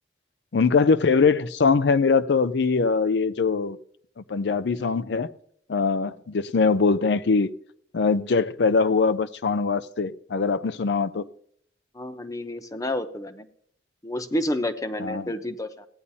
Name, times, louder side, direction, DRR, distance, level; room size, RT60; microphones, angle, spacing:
voice 1, 0.5-3.8 4.2-5.3 5.7-7.5 7.9-11.3 15.0-15.3, left 4 dB, 70° left, 0.5 m, -22 dB
voice 2, 11.9-13.5 14.0-15.9, left 1 dB, 20° left, 0.8 m, -30 dB
17.0 x 9.8 x 2.8 m
head